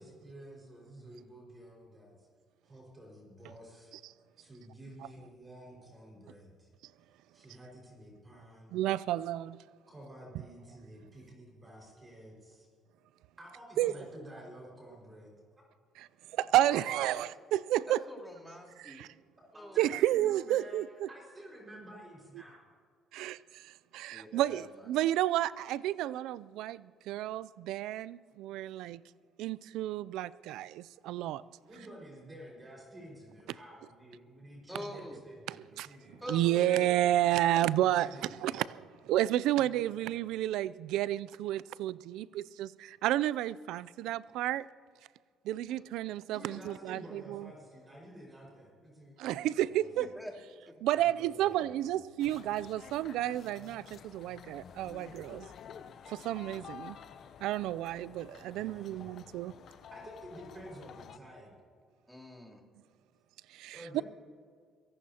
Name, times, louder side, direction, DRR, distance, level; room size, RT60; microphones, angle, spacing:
voice 1, 0.0-2.3 2.6-4.0 4.4-6.7 7.3-8.8 9.9-12.7 13.4-15.4 19.5-20.8 21.1-22.7 31.7-36.4 37.8-38.6 39.6-40.0 45.7-45.8 46.3-50.1 50.9-52.0 58.5-59.3 59.9-61.5 63.7-64.0, right 1 dB, 25° right, 5.0 m, -51 dB
voice 2, 8.7-9.6 13.8-13.9 16.0-18.0 18.8-19.1 19.8-21.1 23.1-29.0 29.4-31.4 35.5-35.9 36.3-38.7 39.0-44.7 45.4-47.5 49.2-50.1 50.8-55.5 56.1-57.0 57.4-59.5 63.5-64.0, right 13 dB, 85° right, 0.3 m, -31 dB
voice 3, 16.6-17.2 17.9-19.1 19.5-20.0 24.1-24.7 34.7-35.2 36.2-36.9 49.9-50.3 50.7-50.8 62.1-62.6, equal, ahead, 3.2 m, -45 dB
sound 1, 52.2-61.2, left 7 dB, 60° left, 0.7 m, -51 dB
24.0 x 17.5 x 2.9 m
cardioid pair, 100°, 0 cm